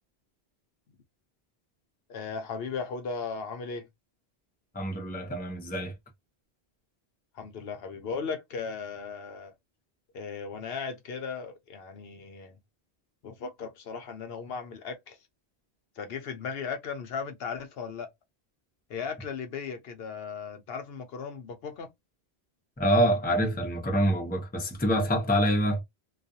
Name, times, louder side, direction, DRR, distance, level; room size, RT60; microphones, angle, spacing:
voice 1, 2.1-3.9 7.3-9.5 10.1-12.5 13.2-15.2 16.0-18.1 18.9-21.9, left 5 dB, 70° left, 0.8 m, -36 dB
voice 2, 4.7-5.9 22.8-25.8, equal, 10° left, 0.6 m, -26 dB
2.3 x 2.3 x 2.6 m
omnidirectional pair, 1.1 m